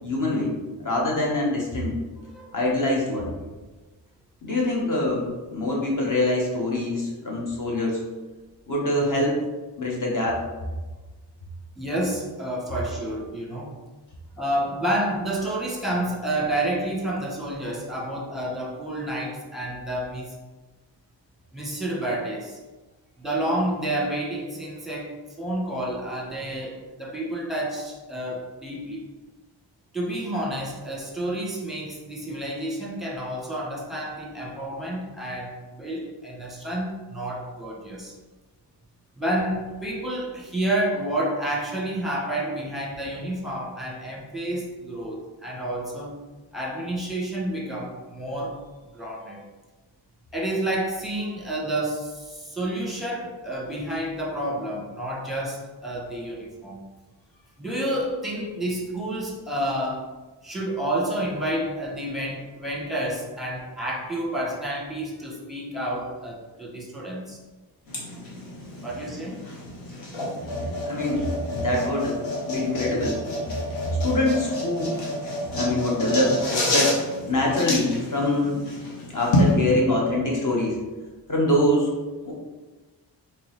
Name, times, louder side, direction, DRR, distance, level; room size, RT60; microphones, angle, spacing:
voice 1, 0.0-0.5 0.8-1.9 2.5-3.3 4.4-8.0 8.7-9.4 9.8-10.4 70.5-72.2 72.5-73.2 74.0-75.0 75.5-77.0 77.3-78.7 79.1-80.8 81.3-82.0 82.2-82.3, left 1 dB, 45° left, -2 dB, 1.3 m, -24 dB
voice 2, 2.3-2.7 11.8-13.8 14.4-20.3 21.5-22.6 23.2-29.1 29.9-38.1 39.2-46.2 46.5-48.6 48.9-49.4 50.3-56.8 57.6-60.0 60.4-67.4 68.8-69.4, right 1 dB, ahead, -3 dB, 1.2 m, -29 dB
sound 1, 67.9-79.5, left 1 dB, 85° left, 1.1 m, -29 dB
3.7 x 3.0 x 3.2 m, 1.2 s
cardioid pair, 50°, 45 cm